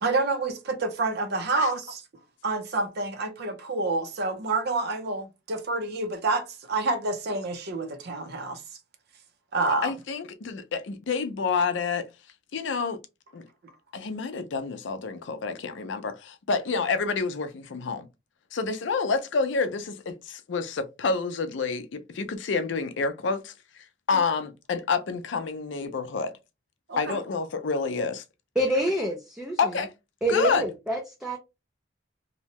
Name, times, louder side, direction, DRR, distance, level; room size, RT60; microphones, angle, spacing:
voice 1, 0.0-2.0 2.4-8.6 9.5-9.9 26.9-27.2, right 3 dB, 60° right, 0.6 m, -28 dB
voice 2, 9.8-12.1 12.5-13.0 13.3-13.4 13.9-18.1 18.5-26.3 27.0-28.2 29.6-29.9 30.3-30.6, left 4 dB, 70° left, 0.5 m, -28 dB
voice 3, 28.6-29.7 30.2-31.4, right 1 dB, 5° right, 0.4 m, -27 dB
2.8 x 2.1 x 2.8 m
head